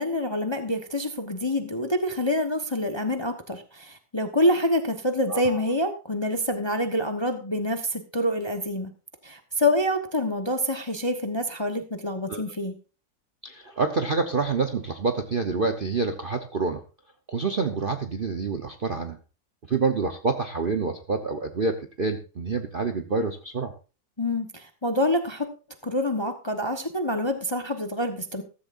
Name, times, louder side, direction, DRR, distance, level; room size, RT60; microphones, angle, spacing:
voice 1, 0.0-8.9 9.2-12.7 24.2-25.5 25.8-28.4, left 1 dB, 20° left, 6 dB, 0.9 m, -26 dB
voice 2, 5.3-5.6 12.3-12.4 13.4-16.8 17.3-19.2 19.7-23.7, right 4 dB, 40° right, 6 dB, 0.8 m, -27 dB
14.5 x 14.5 x 2.6 m, 0.33 s
omnidirectional pair, 2.0 m